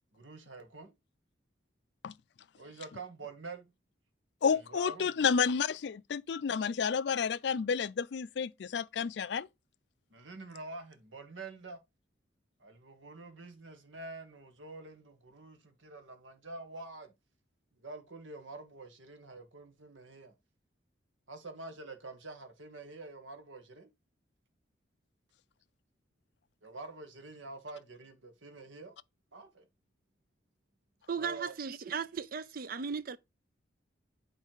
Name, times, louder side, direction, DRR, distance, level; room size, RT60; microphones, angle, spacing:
voice 1, 0.1-0.9 2.5-3.7 4.5-5.1 10.1-11.8 12.6-17.1 17.8-20.3 21.3-23.9 26.6-28.9 29.3-29.7 31.2-31.5, right 3 dB, 85° right, 1.5 m, -47 dB
voice 2, 4.4-9.5, left 6 dB, 65° left, 0.4 m, -30 dB
voice 3, 31.1-33.2, right 6 dB, 50° right, 0.4 m, -36 dB
9.1 x 3.3 x 4.6 m
head